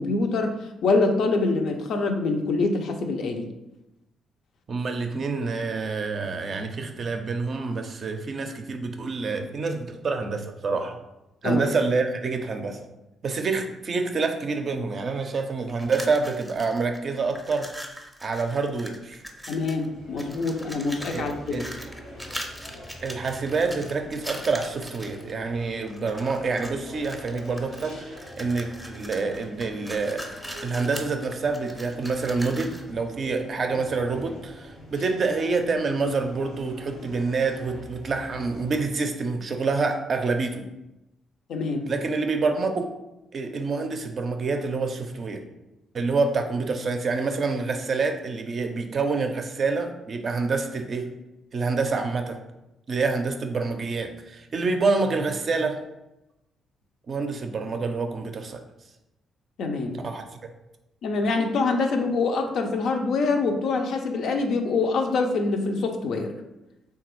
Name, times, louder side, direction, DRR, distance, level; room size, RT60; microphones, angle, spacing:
voice 1, 0.0-3.5 11.4-11.6 19.5-21.6 41.5-41.9 59.6-60.0 61.0-66.3, left 3 dB, 65° left, 5 dB, 0.4 m, -25 dB
voice 2, 4.7-11.0 11.4-12.9 13.2-17.8 18.2-19.2 21.1-21.6 23.0-30.3 30.6-40.7 41.9-42.9 43.3-45.5 45.9-51.1 51.5-52.4 52.9-55.8 57.1-58.6 59.9-60.5, right 4 dB, 50° right, 5 dB, 0.4 m, -27 dB
sound 1, 15.7-17.0 17.3-19.9 20.2-25.3 25.9-26.7 27.0-32.9, equal, ahead, 0.5 m, -40 dB
sound 2, 19.1-38.9, equal, 85° left, 0.8 m, -45 dB
3.1 x 2.3 x 3.0 m, 0.95 s
hypercardioid pair, 45°, 0 cm